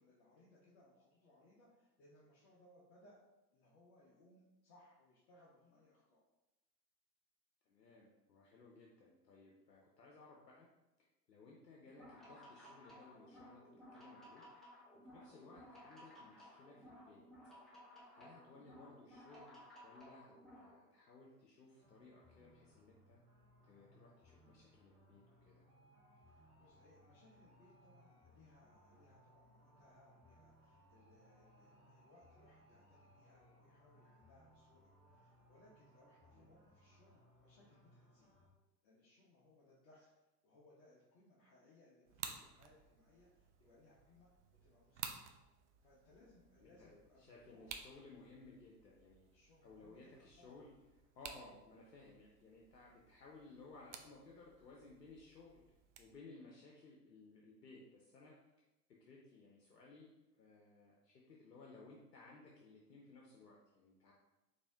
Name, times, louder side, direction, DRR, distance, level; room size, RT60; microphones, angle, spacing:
voice 1, 0.0-3.2 3.5-6.2 26.1-38.3 38.8-45.3 45.8-47.7 49.3-50.6, left 1 dB, 35° left, -5 dB, 0.8 m, -67 dB
voice 2, 7.6-10.7 11.3-13.6 13.9-14.4 14.9-17.2 18.1-23.2 23.6-25.6 36.3-36.5 46.6-46.9 47.2-49.3 49.6-50.7 51.1-58.3 59.0-64.1, left 3 dB, 75° left, -2 dB, 0.8 m, -59 dB
sound 1, 11.9-20.7, left 1 dB, ahead, 0.6 m, -58 dB
sound 2, 21.8-38.5, equal, 20° right, 1.4 m, -67 dB
sound 3, 42.0-56.2, right 7 dB, 50° right, 0.5 m, -55 dB
4.3 x 2.8 x 3.3 m, 1.0 s
figure-of-eight pair, 85°, 49 cm